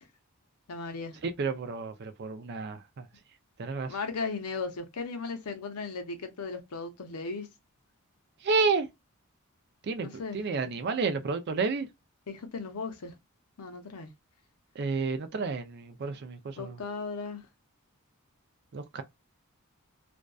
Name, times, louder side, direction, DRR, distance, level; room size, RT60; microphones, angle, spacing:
voice 1, 0.7-1.2 3.8-7.5 10.0-10.4 12.3-13.1 13.6-14.1 16.6-17.4, left 4 dB, 85° left, 0.7 m, -36 dB
voice 2, 1.2-3.1 3.6-3.9 8.4-8.9 9.8-10.1 10.3-11.9 14.8-16.8 18.7-19.0, right 4 dB, 50° right, 0.4 m, -30 dB
2.5 x 2.2 x 2.3 m
head